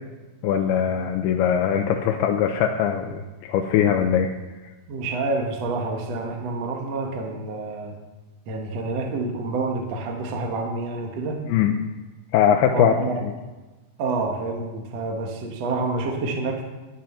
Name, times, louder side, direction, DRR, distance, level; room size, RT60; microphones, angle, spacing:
voice 1, 0.4-4.3 11.5-11.7 12.3-12.9 13.2-13.3, left 9 dB, 90° left, 3 dB, 2.7 m, -21 dB
voice 2, 4.9-8.0 8.5-11.4 12.7-13.2 14.0-16.6, right 3 dB, 55° right, 2 dB, 2.2 m, -28 dB
13.0 x 10.5 x 5.7 m, 1.2 s
omnidirectional pair, 4.5 m